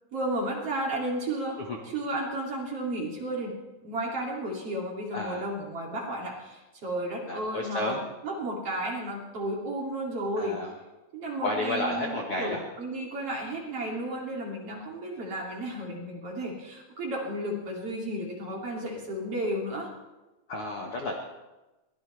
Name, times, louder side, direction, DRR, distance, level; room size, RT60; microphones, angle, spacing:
voice 1, 0.1-1.6 1.9-3.6 3.8-8.0 8.2-10.6 11.1-19.9, right 1 dB, 40° right, -2 dB, 3.4 m, -33 dB
voice 2, 5.1-5.5 7.2-8.0 10.4-10.7 11.4-12.6 20.5-21.2, left 2 dB, 55° left, 0 dB, 1.7 m, -31 dB
22.5 x 17.5 x 3.4 m, 1.1 s
omnidirectional pair, 4.4 m